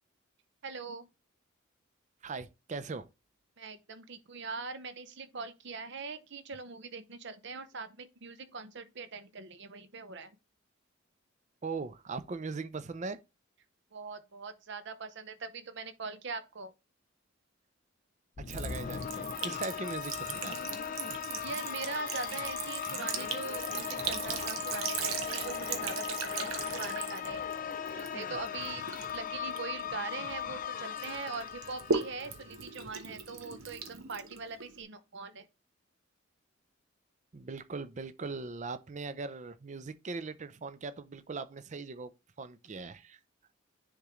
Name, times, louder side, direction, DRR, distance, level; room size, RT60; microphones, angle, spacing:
voice 1, 0.6-1.1 3.6-10.4 13.9-16.7 21.4-27.4 27.9-28.8 29.1-35.5, right 4 dB, 60° right, 0.8 m, -42 dB
voice 2, 2.2-3.1 11.6-13.2 18.4-20.8 37.3-42.1 42.4-43.2, right 4 dB, 35° right, 0.5 m, -40 dB
sound 1, 18.4-32.7, left 7 dB, 40° left, 0.5 m, -38 dB
Sink (filling or washing) / Trickle dribble, 18.5-30.6 31.0-34.8, right 5 dB, 85° right, 1.1 m, -39 dB
10.0 x 3.7 x 3.1 m
head